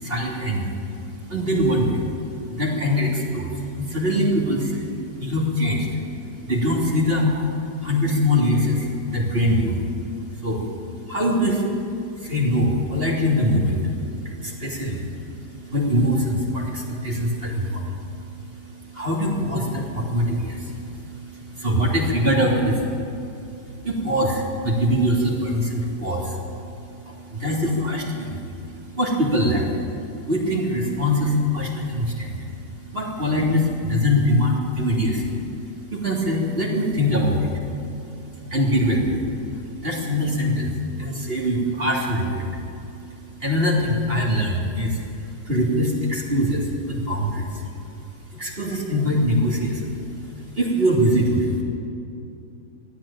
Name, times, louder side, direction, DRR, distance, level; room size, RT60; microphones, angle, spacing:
voice 1, 0.0-0.8 1.1-2.0 2.5-4.8 5.2-6.0 6.4-7.4 7.8-9.8 10.4-10.7 11.1-11.7 12.1-13.9 14.2-18.1 18.5-22.9 23.8-26.4 27.1-28.4 29.0-29.8 30.3-32.4 32.9-35.4 35.9-37.5 38.5-39.2 39.5-42.5 43.4-45.0 45.5-46.6 46.9-47.5 48.3-49.9 50.6-51.6, equal, 30° right, -3 dB, 3.4 m, -23 dB
21.5 x 14.5 x 9.0 m, 2.7 s
omnidirectional pair, 1.9 m